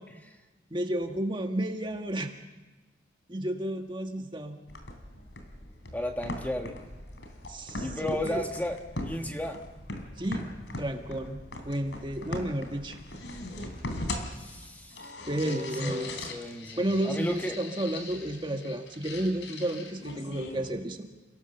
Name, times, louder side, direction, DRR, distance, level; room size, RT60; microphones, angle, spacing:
voice 1, 0.7-2.3 3.3-4.6 7.5-8.4 10.2-10.5 10.8-11.4 11.6-13.0 15.2-16.1 16.8-21.0, right 1 dB, 25° right, 4 dB, 1.5 m, -32 dB
sound 1, 4.7-20.7, left 2 dB, 80° left, 3.4 m, -40 dB
voice 2, 5.9-6.8 7.8-8.8 9.0-9.6 14.3-15.1 15.4-17.6, left 1 dB, 10° left, 4 dB, 1.4 m, -34 dB
29.5 x 17.5 x 6.8 m, 1.2 s
head